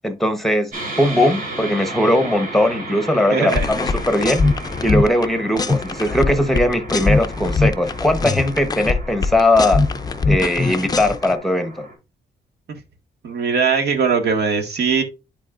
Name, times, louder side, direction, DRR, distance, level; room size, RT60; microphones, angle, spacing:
voice 1, 0.0-0.7 1.0-4.4 4.8-9.8 10.3-11.8, left 1 dB, ahead, 1.0 m, -19 dB
sound 1, 0.7-11.9, right 2 dB, 50° right, 2.8 m, -34 dB
voice 2, 3.3-3.7 13.2-15.0, right 5 dB, 65° right, 1.7 m, -20 dB
sound 2, 3.5-5.3 5.6-11.4, left 3 dB, 20° left, 0.5 m, -21 dB
11.0 x 4.2 x 2.5 m
cardioid pair, 130°, 18 cm